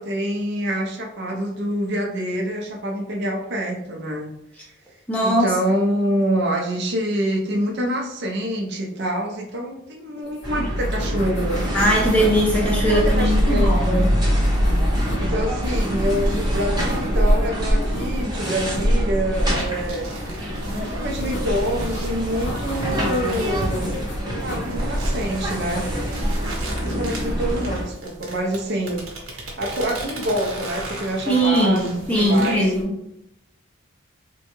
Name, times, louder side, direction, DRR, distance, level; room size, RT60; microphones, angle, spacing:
voice 1, 0.0-4.3 5.2-11.7 12.8-14.1 15.2-20.1 20.8-24.1 24.4-25.9 26.8-29.1 29.6-32.7, right 1 dB, 50° right, 1 dB, 0.6 m, -26 dB
voice 2, 5.1-5.5 11.7-14.0 31.3-32.9, equal, 5° left, -5 dB, 0.6 m, -20 dB
sound 1, 10.3-10.4 10.7-12.5 13.1-14.1 14.4-15.3 15.6-17.5 17.8-18.9 21.1-22.0 22.4-23.2 23.6-24.7 25.5-25.9, equal, 50° left, 0.7 m, -36 dB
sound 2, 10.4-27.8, equal, 20° right, 0.8 m, -23 dB
sound 3, 19.3-32.8, right 1 dB, 75° right, 1.0 m, -36 dB
3.6 x 2.2 x 2.9 m, 0.81 s
head